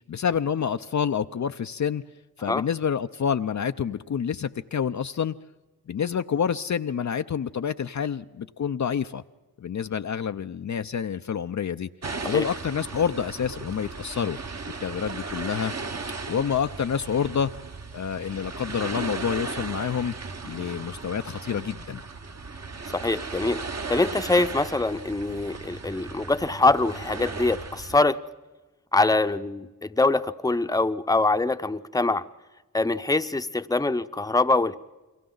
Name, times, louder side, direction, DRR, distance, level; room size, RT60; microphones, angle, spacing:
voice 1, 0.1-2.0 2.4-5.3 5.9-9.2 9.6-11.9 12.2-14.4 14.8-15.7 16.3-17.5 17.9-20.1 20.4-22.0, left 7 dB, 55° left, 9 dB, 0.5 m, -28 dB
sound 1, 12.0-28.0, right 4 dB, 45° right, 1.2 m, -36 dB
voice 2, 22.9-23.6 23.9-28.2 28.9-32.2 32.7-34.7, left 2 dB, 10° left, 10 dB, 0.7 m, -24 dB
30.0 x 22.5 x 3.9 m, 1.2 s
cardioid pair, 55°, 35 cm